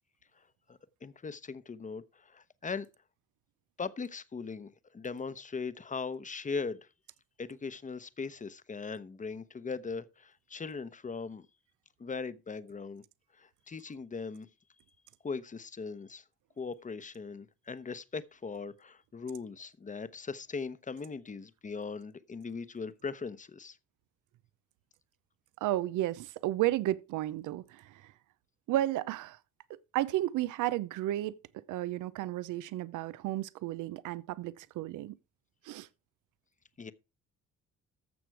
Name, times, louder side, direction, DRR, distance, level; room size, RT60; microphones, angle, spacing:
voice 1, 0.7-2.9 3.8-6.9 7.4-11.5 12.0-13.0 13.4-14.5 15.2-16.2 16.6-23.8 36.8-36.9, left 4 dB, 25° left, 0.9 m, -39 dB
voice 2, 25.6-28.1 28.7-29.4 29.7-31.4 31.7-35.2 35.6-35.9, right 15 dB, 90° right, 0.7 m, -33 dB
14.0 x 6.1 x 4.7 m
cardioid pair, 90°, 30 cm